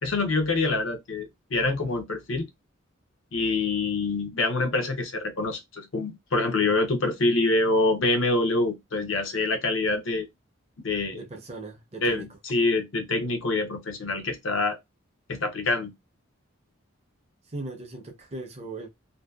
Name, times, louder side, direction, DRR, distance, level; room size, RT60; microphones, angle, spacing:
voice 1, 0.0-2.5 3.3-10.3 10.8-11.2 12.0-14.8 15.3-15.9, left 2 dB, 70° left, 0.6 m, -26 dB
voice 2, 11.1-12.3 17.5-18.9, right 2 dB, 30° right, 0.5 m, -38 dB
2.6 x 2.1 x 2.2 m
head